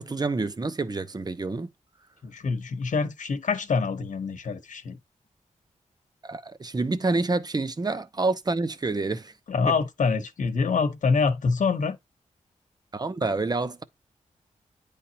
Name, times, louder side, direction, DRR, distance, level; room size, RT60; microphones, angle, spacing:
voice 1, 0.0-1.7 6.2-9.3 12.9-13.8, right 3 dB, 30° right, 0.8 m, -28 dB
voice 2, 2.2-5.0 9.5-12.0, left 5 dB, 70° left, 1.0 m, -25 dB
9.9 x 3.4 x 2.8 m
cardioid pair, 75°, 13 cm